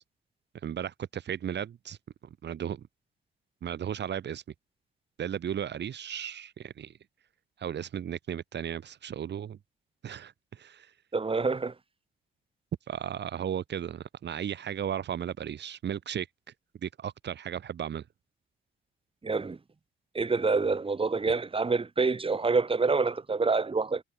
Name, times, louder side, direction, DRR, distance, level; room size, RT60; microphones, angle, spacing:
voice 1, 0.6-2.0 2.4-2.8 3.6-4.4 5.2-6.9 7.6-9.6 10.0-10.9 12.9-16.3 16.8-18.0, right 9 dB, 60° right, 4.8 m, -35 dB
voice 2, 11.1-11.7 19.2-19.6 20.1-24.0, right 4 dB, 25° right, 5.8 m, -27 dB
cardioid pair, 90°, 20 cm